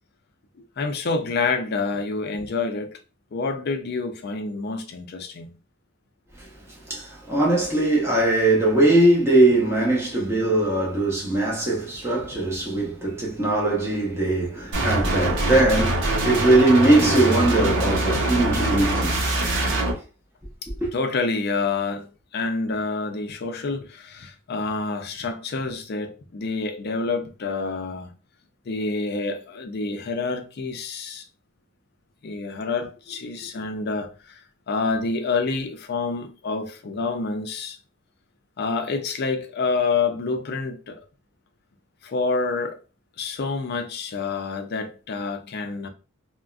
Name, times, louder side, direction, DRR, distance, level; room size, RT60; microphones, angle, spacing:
voice 1, 0.8-2.9 3.3-5.5 20.9-22.1 22.3-28.1 28.7-31.2 32.2-34.1 34.7-37.8 38.6-41.0 42.0-42.8 43.2-45.9, left 4 dB, 50° left, 0.4 m, -27 dB
voice 2, 6.9-19.2 20.8-20.9, right 2 dB, 10° right, 0.8 m, -20 dB
sound 1, 14.7-19.9, right 2 dB, 60° right, 0.8 m, -23 dB
3.5 x 2.1 x 2.4 m
head